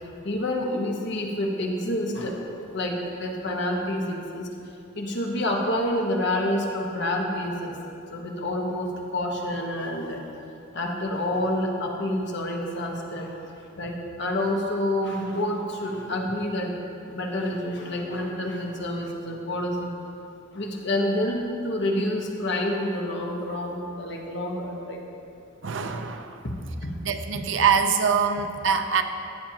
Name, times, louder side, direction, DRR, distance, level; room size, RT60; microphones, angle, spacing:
voice 1, 0.2-4.5 5.0-7.8 8.1-10.2 10.7-13.4 13.8-16.8 17.1-19.9 20.5-25.0 26.4-26.5 26.8-26.9, left 1 dB, 60° left, 0 dB, 1.2 m, -28 dB
voice 2, 25.6-26.4 27.0-29.0, right 6 dB, 70° right, 7 dB, 0.6 m, -24 dB
14.0 x 8.8 x 2.9 m, 2.7 s
head